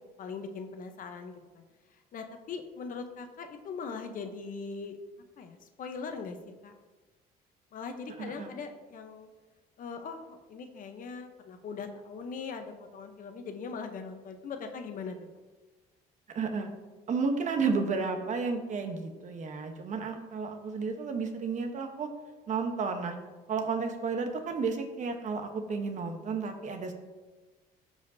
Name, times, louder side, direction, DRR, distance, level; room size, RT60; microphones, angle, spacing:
voice 1, 0.2-1.6 2.1-5.0 5.4-6.4 6.6-6.7 7.7-9.3 9.8-15.2, left 5 dB, 55° left, 6 dB, 0.9 m, -40 dB
voice 2, 8.2-8.5 16.3-16.7 17.1-22.1 22.5-23.2 23.5-26.9, right 4 dB, 45° right, 6 dB, 1.0 m, -32 dB
13.5 x 5.0 x 2.7 m, 1.2 s
cardioid pair, 110°, 17 cm